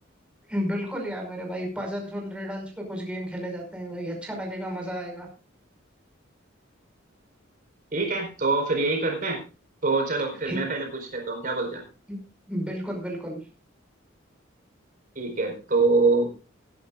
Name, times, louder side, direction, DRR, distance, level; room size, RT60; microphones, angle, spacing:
voice 1, 0.5-5.3 10.5-10.6 12.1-12.2 12.5-13.4, equal, 5° right, 0 dB, 5.4 m, -32 dB
voice 2, 7.9-9.4 9.8-11.8 15.1-16.3, right 3 dB, 45° right, 2 dB, 4.7 m, -25 dB
20.5 x 11.5 x 2.5 m, 0.32 s
head